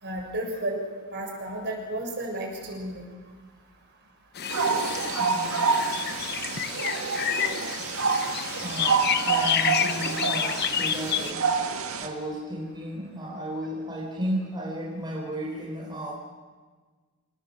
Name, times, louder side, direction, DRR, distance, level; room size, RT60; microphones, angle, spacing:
voice 1, 0.0-0.8 1.1-3.1, right 1 dB, 50° right, 1 dB, 6.8 m, -32 dB
sound 1, 4.4-11.3, left 9 dB, 50° left, 0.9 m, -29 dB
sound 2, 4.5-12.1, right 5 dB, 70° right, 2.1 m, -28 dB
voice 2, 5.2-5.6 8.6-11.5 12.0-16.1, right 1 dB, 20° right, -3 dB, 4.1 m, -34 dB
27.5 x 19.0 x 7.6 m, 1.4 s
head